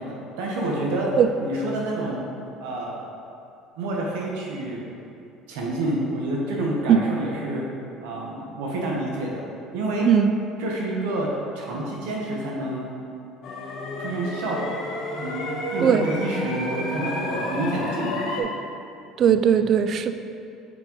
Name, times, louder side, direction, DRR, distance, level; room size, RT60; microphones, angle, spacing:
voice 1, 0.0-1.1 1.4-2.3 2.6-3.0 3.8-4.8 5.5-7.7 8.0-9.4 9.7-10.1 10.6-11.3 11.5-12.9 14.0-14.9 15.2-18.2, right 1 dB, 85° right, -2 dB, 1.0 m, -28 dB
sound 1, 13.4-18.4, left 1 dB, 60° left, 1.1 m, -30 dB
voice 2, 19.2-20.1, right 8 dB, 50° right, 9 dB, 0.3 m, -18 dB
5.4 x 4.9 x 3.9 m, 2.6 s
supercardioid pair, 100°, 0 cm